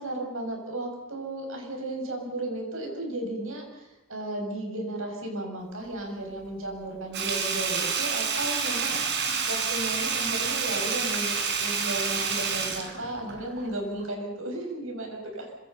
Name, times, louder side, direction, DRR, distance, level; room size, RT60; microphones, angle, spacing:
voice 1, 0.0-9.0 9.5-15.5, right 1 dB, 70° right, 2 dB, 7.2 m, -34 dB
Sink (filling or washing), 7.1-13.7 14.0-14.1, right 5 dB, 55° right, 4.4 m, -28 dB
26.5 x 26.0 x 5.6 m, 0.98 s
head